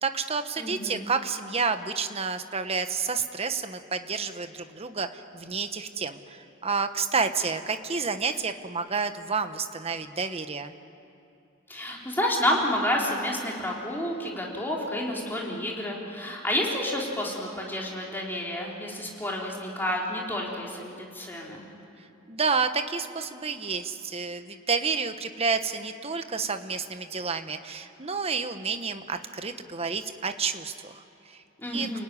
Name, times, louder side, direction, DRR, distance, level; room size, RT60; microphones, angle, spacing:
voice 1, 0.0-10.7 22.3-31.4 31.7-32.0, right 5 dB, 30° right, 8 dB, 1.1 m, -30 dB
voice 2, 0.6-1.0 11.7-21.6 31.6-32.0, left 1 dB, 10° left, -3 dB, 3.8 m, -30 dB
30.0 x 18.5 x 9.9 m, 2.8 s
head